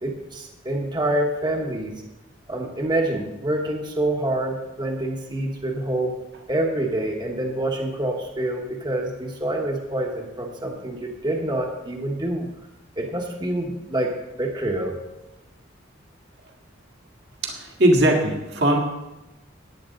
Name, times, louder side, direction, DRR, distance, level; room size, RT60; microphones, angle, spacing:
voice 1, 0.0-1.9 2.5-6.1 6.5-12.5 13.0-14.1 14.4-14.9, right 1 dB, 20° right, 1 dB, 1.3 m, -26 dB
voice 2, 17.4-18.8, right 1 dB, 55° right, 1 dB, 1.8 m, -19 dB
14.5 x 9.9 x 3.9 m, 0.99 s
head